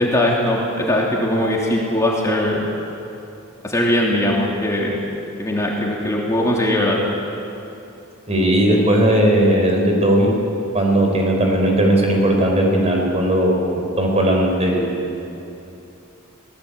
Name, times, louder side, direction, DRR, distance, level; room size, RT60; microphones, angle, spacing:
voice 1, 0.0-2.7 3.6-5.0 5.4-7.0, left 1 dB, 15° left, -3 dB, 2.8 m, -20 dB
voice 2, 8.3-10.3 10.7-14.9, right 1 dB, 30° right, 1 dB, 4.6 m, -17 dB
24.5 x 18.0 x 8.5 m, 2.8 s
head